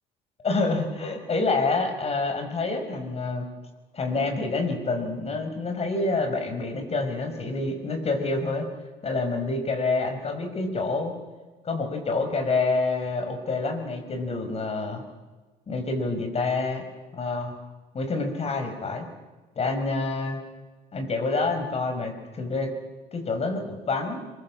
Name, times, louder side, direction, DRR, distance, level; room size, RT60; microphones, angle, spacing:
voice 1, 0.4-3.4 3.9-8.7 9.0-11.1 11.6-15.0 15.7-16.8 17.1-17.6 17.9-19.1 19.6-20.4 20.9-22.7 23.1-24.2, left 3 dB, 35° left, 6 dB, 5.8 m, -27 dB
27.5 x 23.0 x 7.7 m, 1.3 s
cardioid pair, 110°, 17 cm